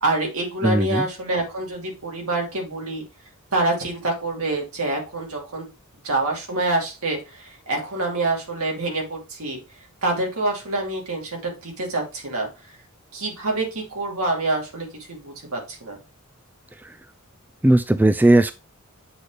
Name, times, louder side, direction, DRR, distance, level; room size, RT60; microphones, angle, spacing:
voice 1, 0.0-3.0 3.5-5.7 6.0-9.6 10.0-12.5 13.1-16.0, right 2 dB, 85° right, 0 dB, 2.8 m, -26 dB
voice 2, 0.6-1.1 16.7-17.0 17.6-18.5, right 1 dB, 10° right, 11 dB, 0.3 m, -17 dB
7.8 x 4.1 x 3.3 m, 0.29 s
head